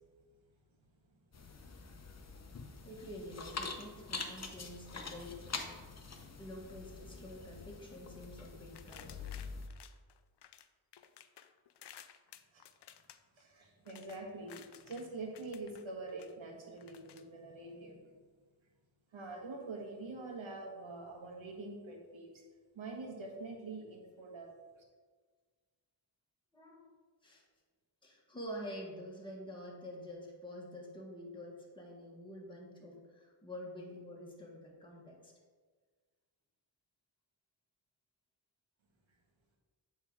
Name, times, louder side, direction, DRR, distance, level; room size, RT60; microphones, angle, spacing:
sound 1, 1.3-9.7, left 4 dB, 35° left, 0.8 m, -45 dB
voice 1, 2.8-5.4 5.7-5.8 6.4-9.3 26.5-26.9 27.2-27.4 28.0-35.3, equal, 10° left, -3 dB, 1.5 m, -48 dB
sound 2, 8.7-10.7 10.9-15.1 15.3-16.3 16.8-17.2, left 10 dB, 60° left, 0.5 m, -56 dB
voice 2, 13.4-18.1 19.1-22.4 22.7-24.5, right 3 dB, 70° right, 0 dB, 1.5 m, -45 dB
8.5 x 3.6 x 4.8 m, 1.5 s
wide cardioid pair, 80°, 48 cm